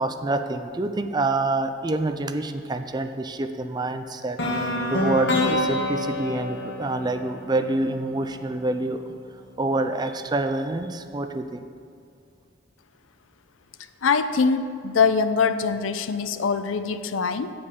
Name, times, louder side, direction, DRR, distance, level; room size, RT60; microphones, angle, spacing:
voice 1, 0.0-9.1 9.6-11.6, right 2 dB, 20° right, 8 dB, 0.4 m, -27 dB
sound 1, 4.4-8.3, left 1 dB, 60° left, 1.2 m, -27 dB
voice 2, 14.0-17.5, left 5 dB, 85° left, 11 dB, 0.5 m, -23 dB
8.1 x 5.2 x 7.3 m, 2.3 s
head